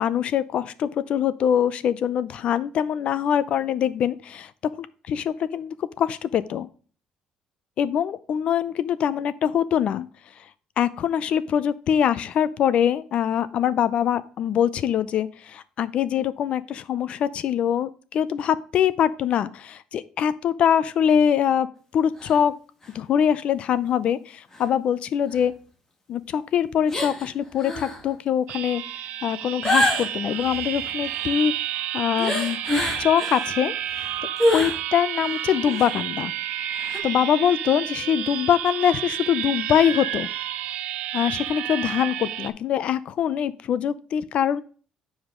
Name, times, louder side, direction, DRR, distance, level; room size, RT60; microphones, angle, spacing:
voice 1, 0.0-4.5 4.8-6.7 7.8-10.1 10.8-21.7 21.9-22.5 22.9-25.5 26.1-28.8 29.2-31.6 31.9-32.6 33.0-34.1 34.5-36.3 37.0-40.3 41.1-44.6, left 9 dB, 55° left, 15 dB, 0.5 m, -23 dB
sound 1, 22.2-22.4 22.8-22.9 24.5-24.6 25.3-25.4 26.9-27.3 27.6-28.0 29.6-31.4 32.2-33.5 33.9-34.8 35.2-35.3 35.6-36.0 36.8-37.0, left 1 dB, 20° left, 1.7 m, -26 dB
sound 2, 28.5-42.5, right 12 dB, 85° right, 0.6 m, -30 dB
9.2 x 5.0 x 3.8 m, 0.40 s
cardioid pair, 145°, 2 cm